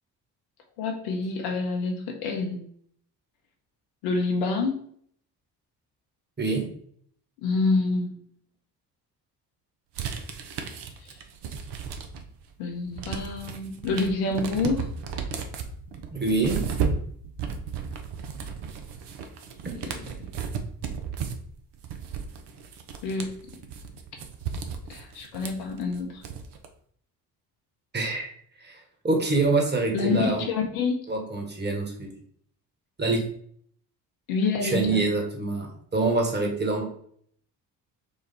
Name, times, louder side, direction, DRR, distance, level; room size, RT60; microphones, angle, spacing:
voice 1, 0.8-2.6 4.0-4.8 7.4-8.2 12.6-14.9 19.7-19.9 23.0-23.3 24.9-26.2 29.9-31.0 34.3-35.0, left 3 dB, 70° left, 2 dB, 1.2 m, -27 dB
sound 1, 9.9-12.4 12.7-26.7, right 6 dB, 55° right, 0.8 m, -34 dB
voice 2, 16.1-16.6 27.9-28.3 28.6-30.4 31.1-32.1 33.0-33.2 34.6-36.8, right 3 dB, 20° right, 1 dB, 1.5 m, -25 dB
5.0 x 2.4 x 4.2 m, 0.62 s
hypercardioid pair, 50°, 48 cm